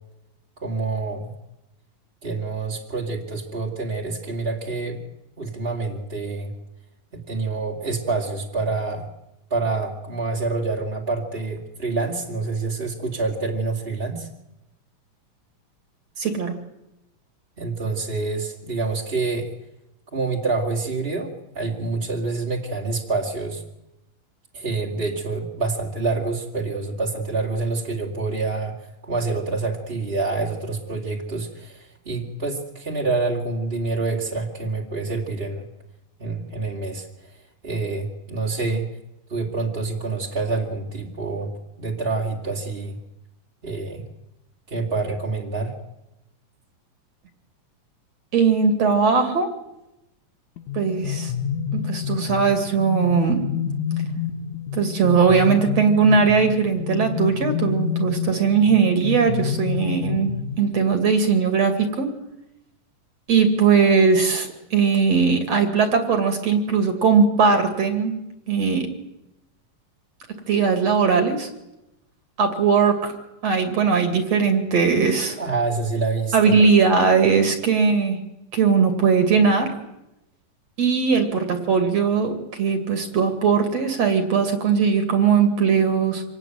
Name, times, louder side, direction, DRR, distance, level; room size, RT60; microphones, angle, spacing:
voice 1, 0.6-1.3 2.2-5.0 5.4-6.5 7.1-9.1 9.5-14.3 17.6-19.5 20.1-23.6 24.5-28.8 29.0-35.6 36.2-37.1 37.6-38.9 39.3-41.5 41.8-43.0 43.6-44.0 44.7-45.7 75.4-76.5, right 3 dB, 20° right, -2 dB, 2.1 m, -27 dB
voice 2, 16.2-16.5 48.3-49.5 50.7-51.3 51.8-53.4 54.7-62.1 63.3-68.1 68.5-68.9 70.5-71.5 72.4-73.1 73.4-75.4 76.3-78.2 78.5-79.7 80.8-86.2, right 5 dB, 50° right, 6 dB, 3.2 m, -19 dB
sound 1, 50.6-61.0, left 8 dB, 65° left, 2.8 m, -28 dB
26.0 x 19.0 x 9.2 m, 0.91 s
omnidirectional pair, 4.0 m